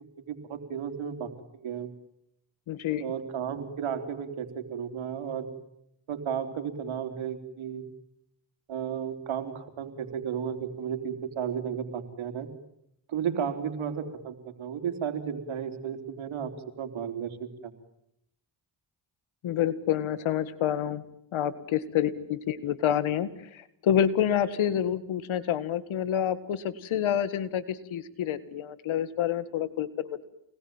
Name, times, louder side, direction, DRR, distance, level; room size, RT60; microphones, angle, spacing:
voice 1, 0.3-1.3 1.6-1.9 3.0-5.5 6.1-7.8 8.7-12.5 13.1-16.5 16.8-17.7, right 8 dB, 90° right, 8 dB, 3.8 m, -33 dB
voice 2, 2.7-3.0 19.4-21.0 21.3-30.2, left 10 dB, 90° left, 15 dB, 2.1 m, -28 dB
29.0 x 21.0 x 9.2 m, 0.78 s
cardioid pair, 60°, 46 cm